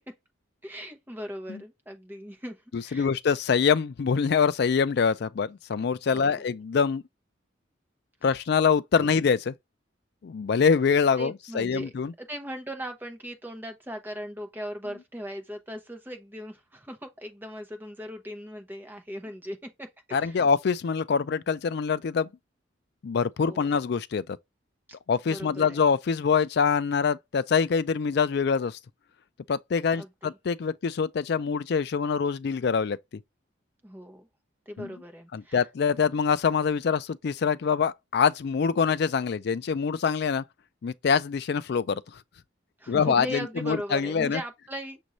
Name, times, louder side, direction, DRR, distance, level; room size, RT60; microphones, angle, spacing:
voice 1, 0.6-3.1 6.1-6.5 9.0-9.1 11.2-11.9 12.2-20.5 23.4-23.7 25.3-25.8 30.0-30.3 33.8-34.3 34.7-35.7 42.8-45.0, equal, 10° right, 0.9 m, -38 dB
voice 2, 2.7-7.0 8.2-9.5 10.2-12.1 20.1-22.3 23.0-24.2 25.1-28.8 29.5-33.0 34.8-34.9 35.3-40.4 40.8-42.0 42.9-44.4, left 6 dB, 55° left, 0.4 m, -25 dB
6.2 x 2.6 x 3.0 m
head